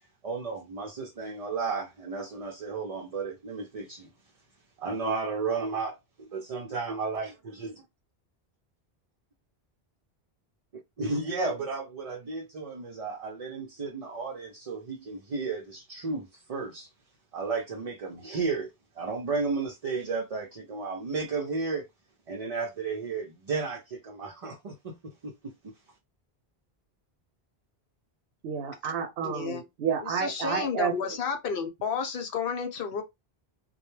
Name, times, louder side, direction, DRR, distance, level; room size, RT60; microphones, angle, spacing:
voice 1, 0.2-4.1 4.8-7.8 11.0-16.9 17.3-18.7 19.0-21.9 22.3-25.3, right 4 dB, 45° right, 0.5 m, -33 dB
voice 2, 28.4-30.9, right 7 dB, 75° right, 0.8 m, -30 dB
voice 3, 29.2-29.6 30.0-33.0, left 6 dB, 65° left, 0.8 m, -31 dB
2.2 x 2.1 x 3.0 m
omnidirectional pair, 1.1 m